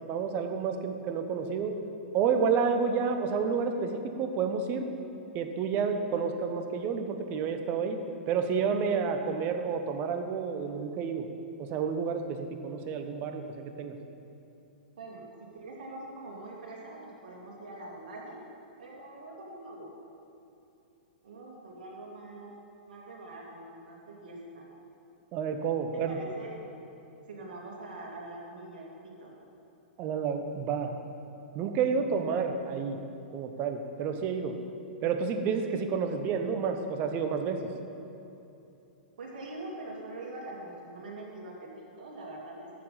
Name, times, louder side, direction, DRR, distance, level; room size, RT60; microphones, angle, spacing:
voice 1, 0.1-1.7 2.1-4.9 5.3-8.0 8.3-11.3 11.6-13.9 25.3-26.1 30.0-30.9 31.5-33.0 33.3-34.5 35.0-37.6, right 6 dB, 35° right, 6 dB, 1.1 m, -30 dB
voice 2, 15.0-18.4 18.8-19.9 21.2-22.5 22.9-24.7 25.9-26.6 27.3-29.3 39.2-42.7, right 2 dB, 60° right, -2 dB, 2.7 m, -43 dB
13.5 x 7.2 x 5.7 m, 2.9 s
figure-of-eight pair, 105°, 5 cm